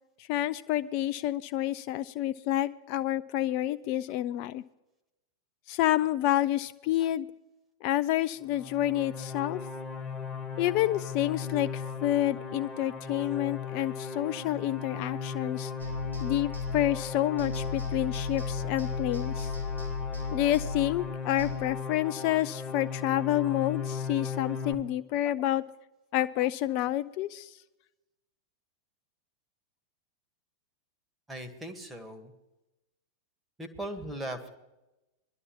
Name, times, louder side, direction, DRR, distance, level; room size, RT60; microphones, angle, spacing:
voice 1, 0.3-4.6 5.7-7.3 7.8-9.6 10.6-15.7 16.2-19.5 20.3-25.6 26.1-27.5, left 13 dB, 45° left, 13 dB, 0.4 m, -29 dB
sound 1, 8.5-24.7, left 6 dB, 10° left, 1.4 m, -37 dB
sound 2, 15.8-17.1 17.4-21.5, left 4 dB, 80° right, 3.2 m, -35 dB
voice 2, 31.3-32.3 33.6-34.5, right 1 dB, 10° right, 6 dB, 1.6 m, -38 dB
21.0 x 12.0 x 3.1 m, 0.98 s
figure-of-eight pair, 90°, 0 cm